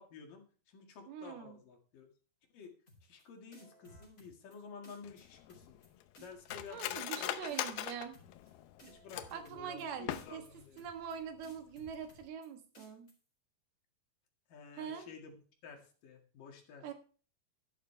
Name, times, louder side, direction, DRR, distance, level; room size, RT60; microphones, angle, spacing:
voice 1, 0.0-2.1 2.5-2.7 3.0-5.8 6.2-7.3 8.9-10.9 14.5-15.3 15.6-16.9, left 5 dB, 65° left, 2 dB, 3.5 m, -52 dB
voice 2, 1.1-1.6 6.7-8.2 9.3-10.4 10.8-13.1 14.8-15.1 16.8-16.9, right 7 dB, 85° right, 6 dB, 3.4 m, -43 dB
sound 1, 2.9-3.2 3.5-4.6 4.8-5.2 5.5-5.9 6.1-7.2 7.5-7.9 8.1-8.5 8.8-9.8 10.1-10.5 10.8-11.1 11.4-12.5 12.7-13.1, right 1 dB, 20° left, 4.1 m, -58 dB
Cutlery silverware, 5.0-9.5 10.0-10.7 11.0-11.1 11.4-11.8 12.1-12.3, left 12 dB, 85° left, 2.8 m, -41 dB
12.0 x 11.5 x 3.3 m, 0.39 s
omnidirectional pair, 4.3 m